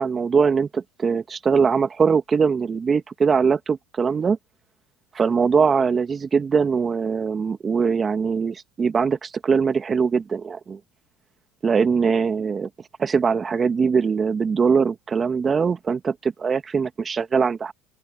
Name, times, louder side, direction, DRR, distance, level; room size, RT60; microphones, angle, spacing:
voice 1, 0.0-4.4 5.1-10.8 11.6-12.7 13.0-17.7, right 5 dB, 30° right, 2.3 m, -21 dB
open air
hypercardioid pair, 80°, 0 cm